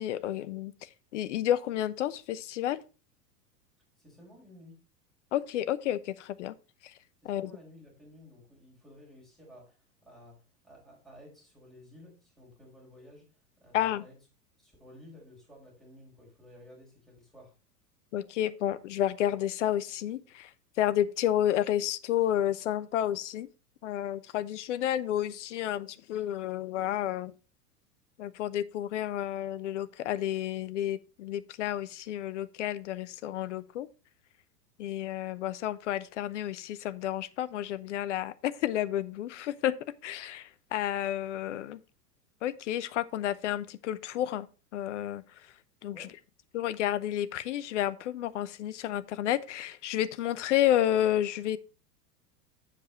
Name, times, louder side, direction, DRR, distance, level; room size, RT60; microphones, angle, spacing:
voice 1, 0.0-2.8 5.3-6.6 6.8-6.9 7.2-7.5 13.7-14.0 18.1-20.5 20.8-23.5 23.8-27.3 28.2-33.9 34.8-39.7 40.0-41.8 42.4-45.2 45.8-46.0 46.5-51.6, left 12 dB, 50° left, 0.6 m, -31 dB
voice 2, 4.0-4.8 7.2-14.2 14.6-17.5 45.9-46.2, left 1 dB, ahead, 4.6 m, -54 dB
7.5 x 6.6 x 4.3 m
figure-of-eight pair, 95°, 49 cm